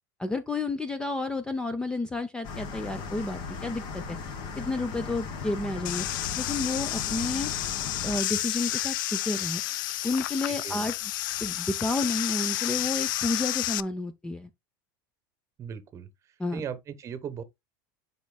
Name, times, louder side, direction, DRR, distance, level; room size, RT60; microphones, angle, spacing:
voice 1, 0.2-4.2 4.6-6.1 6.4-7.5 8.0-9.6 10.0-11.1 11.4-14.5 16.4-16.6, left 2 dB, 10° left, 0.5 m, -31 dB
sound 1, 2.4-8.2, left 5 dB, 45° left, 1.5 m, -37 dB
sound 2, 5.8-13.8, left 15 dB, 90° left, 0.4 m, -31 dB
voice 2, 15.6-16.1 16.5-17.4, right 7 dB, 30° right, 1.0 m, -37 dB
10.5 x 4.2 x 2.2 m
supercardioid pair, 145°, 10 cm